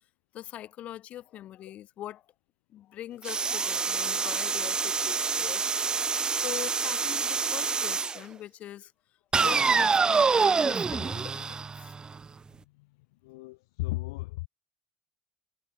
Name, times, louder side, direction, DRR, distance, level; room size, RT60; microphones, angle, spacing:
voice 1, 0.3-2.3 2.7-8.9 9.4-11.9, left 12 dB, 65° left, 6.9 m, -42 dB
sound 1, 3.2-8.2 9.3-12.2, right 5 dB, 35° right, 2.1 m, -26 dB
voice 2, 12.6-13.0 13.2-14.5, left 22 dB, 90° left, 2.2 m, -36 dB
hypercardioid pair, 65°, 2 cm